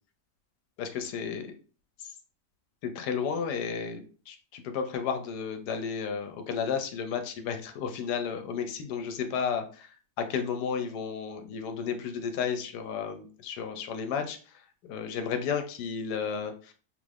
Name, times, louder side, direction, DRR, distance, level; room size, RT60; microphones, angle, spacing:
voice 1, 0.8-1.5 2.0-2.1 2.8-16.7, left 6 dB, 80° left, 7 dB, 1.2 m, -33 dB
3.3 x 2.5 x 3.2 m, 0.38 s
omnidirectional pair, 1.8 m